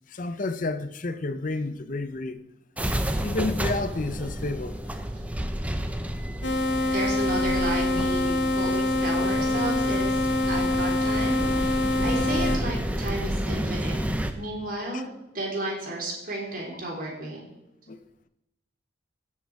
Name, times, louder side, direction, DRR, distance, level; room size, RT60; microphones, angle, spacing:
voice 1, 0.1-2.4 3.2-4.7 14.9-15.0 17.9-18.0, left 2 dB, 45° left, 0.6 m, -30 dB
sound 1, 2.8-14.3, right 1 dB, 10° right, 0.7 m, -30 dB
sound 2, 6.4-12.6, left 2 dB, 80° left, 1.5 m, -25 dB
voice 2, 6.9-15.1 15.3-17.4, right 1 dB, 50° right, 3.4 m, -33 dB
17.0 x 6.5 x 4.7 m
head